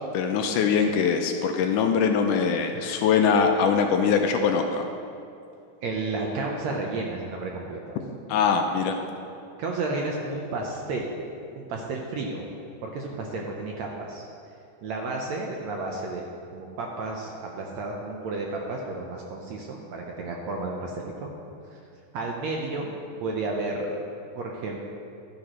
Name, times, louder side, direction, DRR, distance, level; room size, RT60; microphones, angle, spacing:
voice 1, 0.1-4.9 8.3-9.0, left 6 dB, 80° left, 4 dB, 2.0 m, -22 dB
voice 2, 2.7-3.0 5.8-8.0 9.6-11.2 11.6-12.5 12.8-14.3 14.8-16.2 16.5-21.3 21.7-21.8 22.1-22.9 23.2-24.0 24.4-24.8, right 3 dB, 75° right, -1 dB, 1.7 m, -32 dB
12.5 x 10.0 x 3.1 m, 2.5 s
omnidirectional pair, 3.9 m